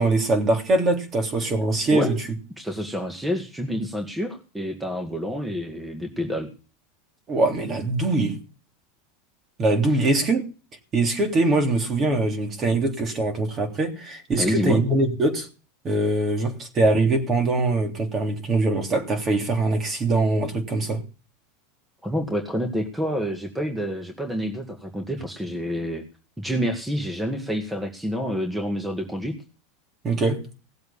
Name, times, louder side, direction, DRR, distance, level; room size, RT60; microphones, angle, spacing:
voice 1, 0.0-2.3 7.3-8.4 9.6-10.5 10.9-15.5 15.8-21.0 30.0-30.4, right 2 dB, 30° right, 3.3 m, -22 dB
voice 2, 2.6-6.5 9.9-10.0 14.4-14.8 22.0-26.0 26.4-29.3, equal, 5° right, 2.0 m, -28 dB
17.5 x 7.7 x 7.3 m
supercardioid pair, 135°, 0 cm